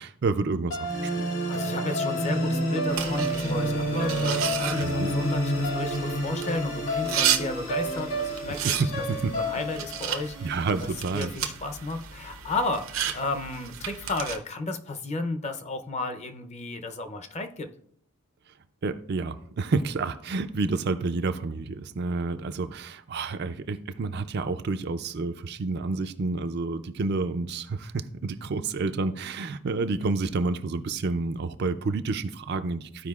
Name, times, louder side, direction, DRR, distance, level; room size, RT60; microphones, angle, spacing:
voice 1, 0.0-1.3 4.8-5.1 8.5-9.3 10.4-11.3 18.8-33.1, right 3 dB, 50° right, 10 dB, 0.4 m, -29 dB
sound 1, 0.7-11.0, equal, 70° left, 2.1 m, -29 dB
voice 2, 1.5-8.8 9.3-10.4 10.8-17.7, left 2 dB, 30° left, 7 dB, 0.6 m, -33 dB
sound 2, 2.9-14.4, right 9 dB, 75° right, 0.8 m, -33 dB
14.0 x 4.9 x 2.4 m, 0.66 s
head